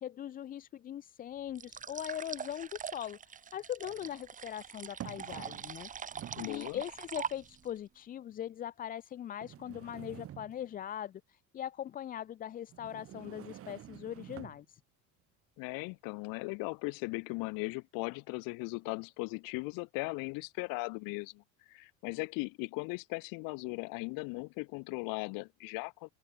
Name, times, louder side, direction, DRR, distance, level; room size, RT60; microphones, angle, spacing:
voice 1, 0.0-3.2 3.5-5.9 6.5-14.8, left 10 dB, 25° left, 0.4 m, -41 dB
sound 1, 1.5-7.8, right 7 dB, 25° right, 1.1 m, -43 dB
sound 2, 2.0-2.1 3.5-4.1 5.0-5.8 6.1-6.6 7.4-7.5 8.3-8.4 9.4-10.8 12.7-14.7, right 12 dB, 40° right, 2.3 m, -48 dB
voice 2, 6.3-6.8 15.6-26.1, left 29 dB, 80° left, 1.3 m, -38 dB
open air
cardioid pair, 140°, 33 cm